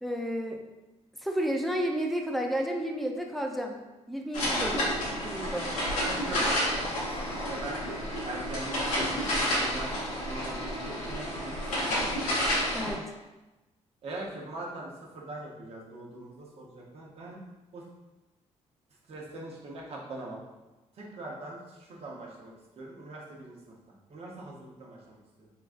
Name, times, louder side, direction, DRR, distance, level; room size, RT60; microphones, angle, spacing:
voice 1, 0.0-0.6 1.2-3.8 4.1-5.7 12.7-13.0, equal, ahead, 1 dB, 0.4 m, -32 dB
sound 1, 4.3-12.9, equal, 90° left, 1.3 m, -30 dB
voice 2, 6.0-7.8 8.2-12.1 14.0-17.4 17.7-17.8 19.1-20.4 21.0-23.8 24.1-25.5, right 2 dB, 55° right, -2 dB, 0.9 m, -42 dB
3.7 x 3.7 x 2.5 m, 1.1 s
cardioid pair, 110°, 12 cm